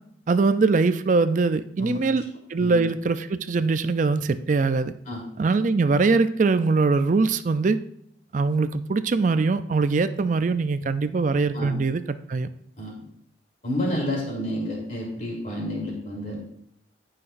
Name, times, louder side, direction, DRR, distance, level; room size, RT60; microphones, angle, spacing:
voice 1, 0.3-2.2 2.5-4.9 5.4-7.8 8.3-12.5, right 4 dB, 40° right, 12 dB, 0.4 m, -22 dB
voice 2, 13.6-16.4, left 1 dB, 45° left, -3 dB, 3.3 m, -30 dB
17.0 x 5.8 x 2.6 m, 0.71 s
head